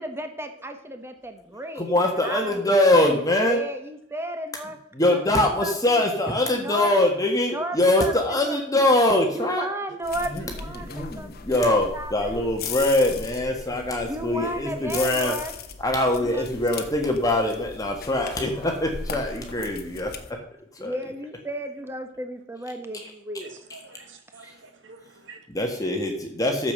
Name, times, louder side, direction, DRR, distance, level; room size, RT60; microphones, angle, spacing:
voice 1, 0.0-2.7 3.0-3.1 3.4-4.8 5.1-6.0 6.5-6.9 7.5-8.8 9.3-12.4 14.1-15.5 16.2-16.5 20.8-23.6, right 1 dB, 15° right, 6 dB, 1.3 m, -34 dB
voice 2, 1.8-3.6 5.0-9.7 10.3-10.4 10.8-15.3 15.8-20.1 20.8-21.0 24.4-24.5 25.5-26.7, left 1 dB, 20° left, 2 dB, 1.4 m, -23 dB
sound 1, 10.0-20.3, left 5 dB, 55° left, 1.1 m, -38 dB
voice 3, 23.4-25.5, right 2 dB, 70° right, 7 dB, 1.7 m, -47 dB
9.2 x 7.0 x 6.7 m, 0.75 s
head